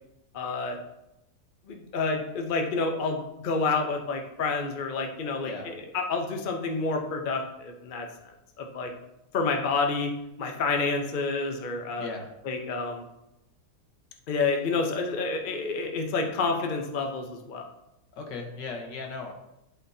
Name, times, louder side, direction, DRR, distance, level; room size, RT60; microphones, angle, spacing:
voice 1, 0.3-0.8 1.7-8.9 9.3-10.1 10.4-12.1 12.4-13.0 14.3-17.6, left 4 dB, 55° left, 3 dB, 0.5 m, -29 dB
voice 2, 12.0-12.3 18.1-19.3, left 4 dB, 75° left, 2 dB, 1.7 m, -37 dB
11.5 x 4.3 x 2.7 m, 0.88 s
omnidirectional pair, 2.0 m